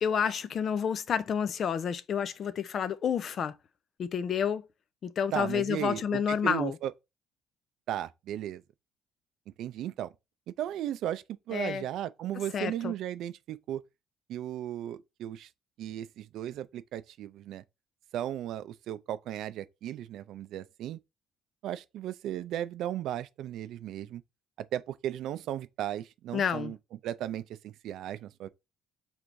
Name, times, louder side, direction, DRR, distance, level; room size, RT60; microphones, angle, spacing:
voice 1, 0.0-3.5 4.0-4.6 5.0-6.8 11.5-11.8 12.5-12.9 26.3-26.7, left 7 dB, 50° left, 0.5 m, -29 dB
voice 2, 5.3-6.9 7.9-8.6 9.6-10.1 10.5-13.8 14.3-15.5 15.8-17.6 18.1-21.0 21.6-24.2 24.6-26.8 27.0-28.5, right 11 dB, 70° right, 0.4 m, -36 dB
4.5 x 3.3 x 2.6 m
cardioid pair, 100°, 0 cm